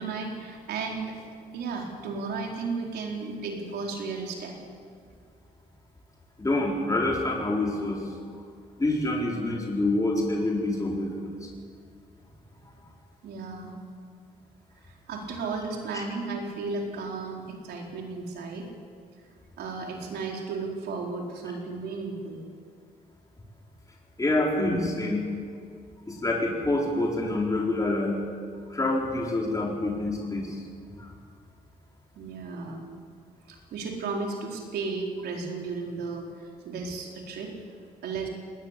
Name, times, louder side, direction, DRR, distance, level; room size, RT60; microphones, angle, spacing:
voice 1, 0.0-4.6 13.2-13.7 14.8-18.7 19.6-22.4 32.1-32.8 33.5-36.3 36.6-37.5 38.0-38.3, right 4 dB, 90° right, 0 dB, 4.4 m, -34 dB
voice 2, 6.4-8.1 8.8-11.5 15.9-16.0 24.2-25.3 26.1-28.2 28.7-30.6 31.0-31.1, left 2 dB, 20° left, -2 dB, 4.5 m, -27 dB
20.0 x 19.5 x 8.5 m, 2.2 s
cardioid pair, 90°, 16 cm